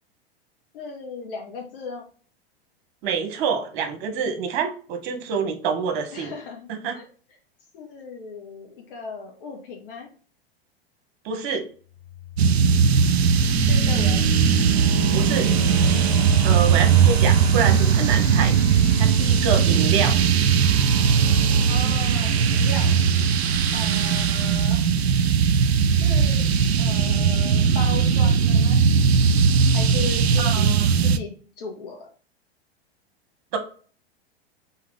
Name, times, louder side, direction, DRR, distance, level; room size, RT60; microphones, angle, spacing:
voice 1, 0.7-2.0 6.1-6.7 6.9-7.1 7.7-10.1 13.7-14.3 21.7-23.0 23.7-24.9 26.0-28.8 29.7-30.7 31.0-31.3 31.6-32.1, left 4 dB, 60° left, 1 dB, 1.8 m, -36 dB
voice 2, 3.0-6.3 6.7-7.0 11.2-11.7 15.1-15.5 16.4-20.2 30.4-30.9 33.5-33.6, right 6 dB, 55° right, 6 dB, 1.3 m, -27 dB
sound 1, 12.0-24.6, left 3 dB, 15° left, 1.9 m, -35 dB
sound 2, 12.4-31.2, right 6 dB, 90° right, 0.5 m, -19 dB
4.0 x 3.6 x 3.6 m, 0.41 s
hypercardioid pair, 95°, 31 cm